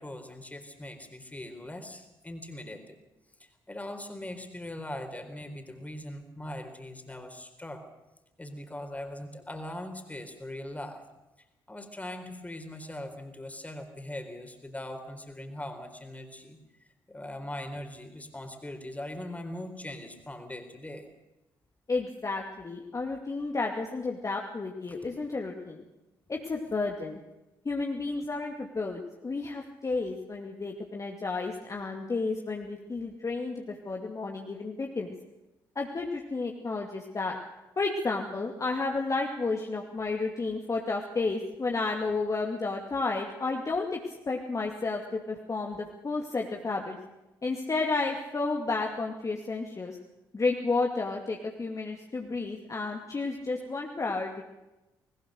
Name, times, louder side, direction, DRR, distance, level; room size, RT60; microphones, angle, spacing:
voice 1, 0.0-3.0 3.4-7.8 8.4-11.0 11.7-16.6 17.1-21.1, left 1 dB, 15° left, 6 dB, 4.3 m, -40 dB
voice 2, 21.9-25.8 26.3-27.2 27.6-35.1 35.8-37.4 37.8-47.0 47.4-50.0 50.3-54.4, left 3 dB, 30° left, 1 dB, 2.5 m, -32 dB
20.5 x 20.0 x 6.5 m, 0.98 s
figure-of-eight pair, 40°, 11 cm